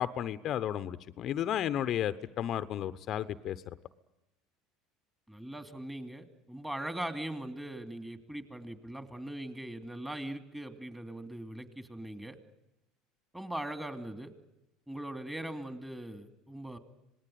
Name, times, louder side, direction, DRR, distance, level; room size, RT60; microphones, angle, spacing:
voice 1, 0.0-3.6, left 11 dB, 50° left, 13 dB, 0.9 m, -33 dB
voice 2, 5.3-12.4 13.3-14.3 14.9-16.8, right 1 dB, 10° right, 8 dB, 2.8 m, -40 dB
26.0 x 19.5 x 9.3 m, 0.92 s
hypercardioid pair, 80°, 0 cm